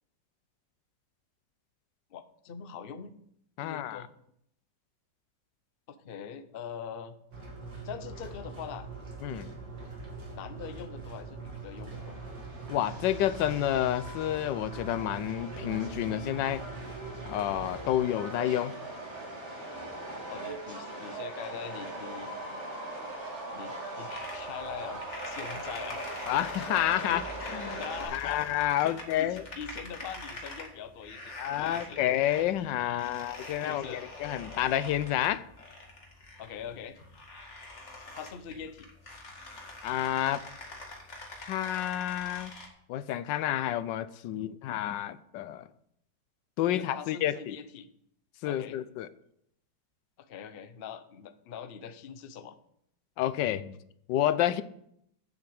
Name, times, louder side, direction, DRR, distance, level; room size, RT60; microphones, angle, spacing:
voice 1, 2.1-3.1 3.6-4.1 5.9-7.1 7.8-8.9 10.3-12.2 20.3-22.3 23.5-26.2 27.1-27.2 27.7-28.4 28.8-32.0 33.6-34.1 36.4-37.0 38.1-38.9 46.7-47.9 48.5-48.8 50.2-52.5, left 7 dB, 55° left, 10 dB, 0.6 m, -43 dB
voice 2, 3.6-4.0 9.2-9.5 12.7-16.6 17.3-18.7 26.3-27.8 28.1-29.4 31.4-35.4 39.8-40.4 41.4-42.5 42.9-45.6 46.6-47.6 48.4-49.1 53.2-53.8 54.1-54.6, left 12 dB, 85° left, 15 dB, 1.3 m, -29 dB
sound 1, 7.3-18.0, right 4 dB, 85° right, 3.1 m, -43 dB
Subway metro underground, 11.9-28.0, right 2 dB, 40° right, 2.7 m, -41 dB
sound 2, 24.1-42.7, left 2 dB, 40° left, 2.2 m, -45 dB
8.4 x 7.7 x 7.0 m, 0.73 s
omnidirectional pair, 1.9 m